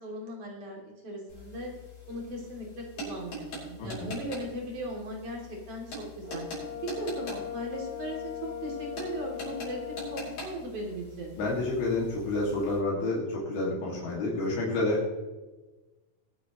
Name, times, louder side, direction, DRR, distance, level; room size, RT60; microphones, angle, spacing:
voice 1, 0.0-1.7 2.1-6.5 6.8-11.4, right 1 dB, 40° right, -1 dB, 3.6 m, -38 dB
sound 1, 1.3-12.8, left 1 dB, 55° left, 6.8 m, -44 dB
voice 2, 3.8-4.1 11.4-15.1, left 2 dB, 85° left, -5 dB, 4.3 m, -29 dB
Brass instrument, 6.2-10.3, left 10 dB, 10° left, 3.0 m, -39 dB
22.0 x 9.2 x 3.1 m, 1.2 s
omnidirectional pair, 4.3 m